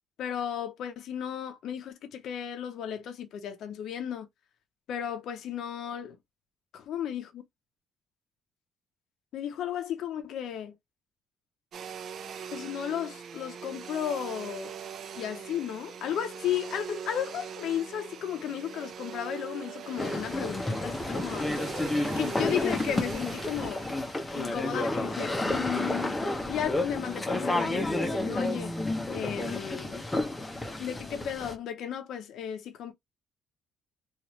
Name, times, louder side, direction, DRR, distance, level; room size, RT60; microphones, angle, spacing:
voice 1, 0.2-4.3 4.9-6.2 6.7-7.4 9.3-10.7 12.5-14.7 15.2-21.9 22.2-23.8 24.3-28.7 29.1-30.0 30.8-32.9, left 9 dB, 65° left, 0.5 m, -34 dB
Domestic sounds home sounds, 11.7-24.5, right 7 dB, 55° right, 0.5 m, -42 dB
sound 1, 20.0-31.5, left 2 dB, 15° left, 0.6 m, -31 dB
3.0 x 2.4 x 3.0 m
cardioid pair, 125°, 0 cm